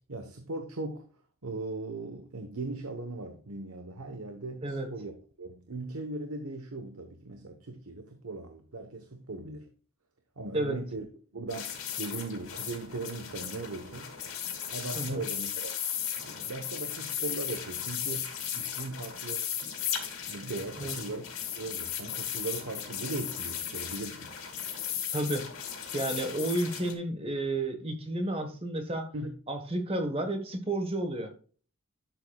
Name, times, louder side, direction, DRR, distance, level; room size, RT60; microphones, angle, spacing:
voice 1, 0.1-1.0 1.4-5.1 5.4-9.7 10.4-11.1 11.3-14.1 14.7-15.7 16.2-19.5 20.3-21.3 21.6-24.3 29.1-29.4, right 2 dB, 80° right, 6 dB, 1.1 m, -38 dB
sound 1, 11.5-26.9, left 9 dB, 75° left, 2.4 m, -36 dB
voice 2, 15.0-15.3 20.8-21.0 25.1-25.5 25.9-29.1 29.5-31.3, right 1 dB, 25° right, 6 dB, 1.3 m, -31 dB
11.5 x 7.7 x 2.3 m, 0.40 s
head